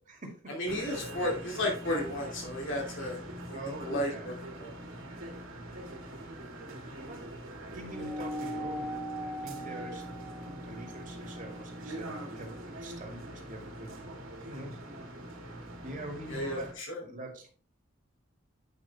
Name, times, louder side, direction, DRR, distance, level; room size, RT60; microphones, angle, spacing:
voice 1, 0.5-3.2 3.5-4.7 8.0-8.1 16.3-17.0, left 1 dB, 65° left, 0 dB, 2.6 m, -34 dB
sound 1, 0.6-16.7, right 1 dB, 75° right, 2.3 m, -43 dB
voice 2, 3.5-4.4 7.1-7.3 7.7-10.3 10.5-13.9 14.5-14.8 15.8-16.7 17.0-17.5, right 1 dB, 40° right, 1 dB, 2.4 m, -44 dB
sound 2, 7.9-12.7, equal, 5° left, 1.1 m, -40 dB
9.1 x 5.7 x 3.5 m, 0.39 s
head